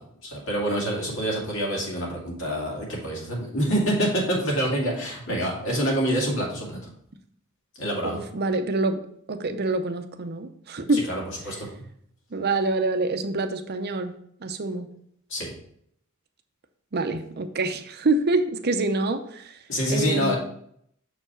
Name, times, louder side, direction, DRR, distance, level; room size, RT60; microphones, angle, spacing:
voice 1, 0.2-6.8 7.8-8.2 10.9-11.7 15.3-15.5 19.7-20.4, equal, 65° left, -2 dB, 2.4 m, -26 dB
voice 2, 8.0-9.0 9.3-11.0 12.3-14.2 14.4-14.9 16.9-19.6 19.9-20.3, right 2 dB, 50° right, 8 dB, 0.7 m, -26 dB
6.7 x 4.6 x 4.4 m, 0.68 s
head